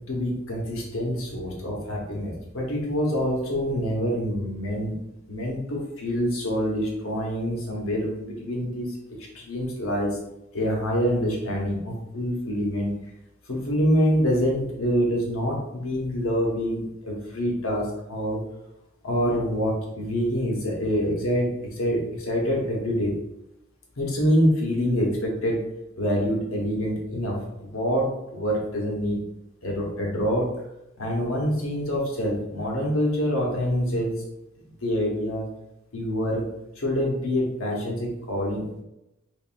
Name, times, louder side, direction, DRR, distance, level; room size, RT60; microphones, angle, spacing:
voice 1, 0.0-4.9 5.3-9.0 9.3-10.2 10.5-12.9 13.5-18.4 19.0-23.2 24.0-25.6 26.0-29.2 29.6-30.5 31.0-34.2 34.6-35.5 35.9-36.4 36.8-38.8, equal, 70° left, -2 dB, 1.1 m, -26 dB
3.6 x 3.4 x 2.6 m, 0.88 s
head